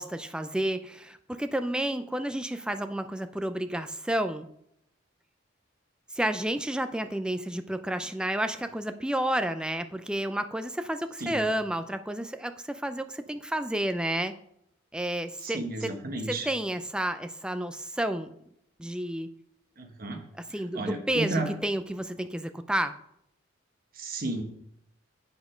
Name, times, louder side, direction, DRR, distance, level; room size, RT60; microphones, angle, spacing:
voice 1, 0.0-4.5 6.1-14.3 14.9-15.9 16.3-18.3 18.8-19.3 20.5-22.9, right 1 dB, 5° right, 9 dB, 0.4 m, -31 dB
voice 2, 15.4-16.5 19.8-20.2 20.7-21.5 23.9-24.4, right 2 dB, 50° right, 4 dB, 1.3 m, -32 dB
8.3 x 5.2 x 5.0 m, 0.74 s
head